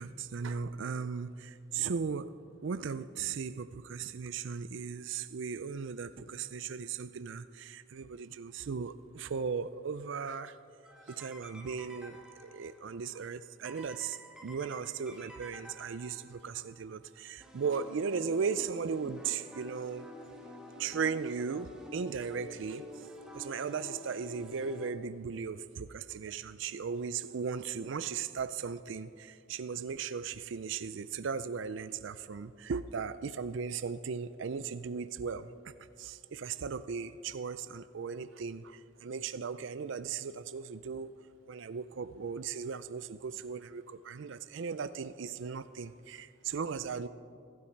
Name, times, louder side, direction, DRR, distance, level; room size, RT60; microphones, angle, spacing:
voice 1, 0.0-2.3 2.6-10.6 11.1-20.1 20.8-23.1 23.3-35.7 36.0-41.1 41.5-47.1, right 5 dB, 60° right, 13 dB, 0.4 m, -37 dB
sound 1, 10.8-12.8 13.6-16.5 17.4-24.9, left 1 dB, 5° right, 1.9 m, -49 dB
23.5 x 12.5 x 4.5 m, 2.4 s
head